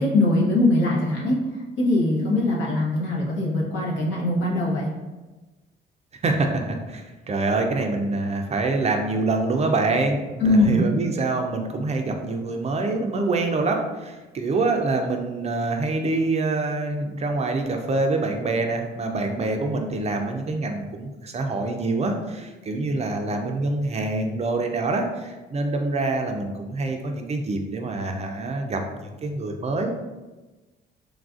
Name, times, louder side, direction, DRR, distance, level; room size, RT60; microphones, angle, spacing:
voice 1, 0.0-4.9 10.4-10.8, left 2 dB, 75° left, -4 dB, 0.9 m, -21 dB
voice 2, 6.2-29.9, right 3 dB, 35° right, 3 dB, 0.4 m, -25 dB
3.2 x 2.4 x 2.4 m, 1.2 s
cardioid pair, 90°, 20 cm